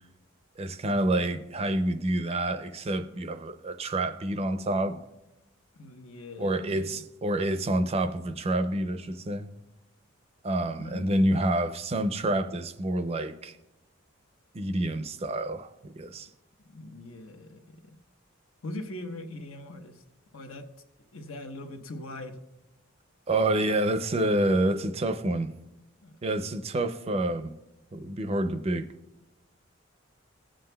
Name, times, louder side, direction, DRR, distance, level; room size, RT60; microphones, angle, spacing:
voice 1, 0.6-5.0 6.4-9.5 10.4-13.6 14.5-16.3 23.3-25.6 26.2-27.5 27.9-28.9, right 1 dB, 30° right, 0.4 m, -28 dB
voice 2, 5.7-7.0 10.8-11.3 16.6-18.0 18.6-20.0 20.3-20.6 21.1-22.4 26.0-26.1, left 1 dB, 80° left, 1.0 m, -41 dB
20.0 x 7.6 x 2.2 m
head